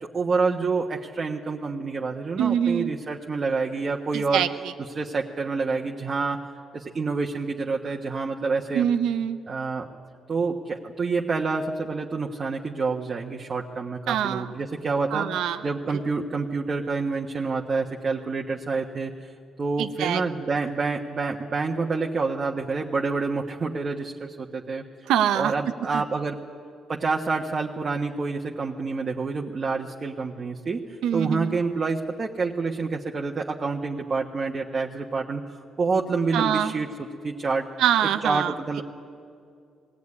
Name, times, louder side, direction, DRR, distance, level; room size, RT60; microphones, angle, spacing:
voice 1, 0.0-4.4 4.9-6.4 6.7-8.9 9.5-9.9 10.3-15.3 15.6-19.3 19.6-24.8 25.3-26.4 26.9-30.8 31.1-36.9 37.2-37.7 38.2-38.8, right 4 dB, 40° right, 0 dB, 1.3 m, -27 dB
voice 2, 2.4-2.9 4.1-4.7 8.7-9.4 14.1-14.5 15.1-15.7 19.8-20.2 25.1-25.5 25.9-26.0 31.0-31.6 36.3-36.7 37.8-38.5, right 9 dB, 85° right, 10 dB, 0.9 m, -24 dB
21.0 x 16.5 x 9.8 m, 2.4 s
cardioid pair, 90°, 0 cm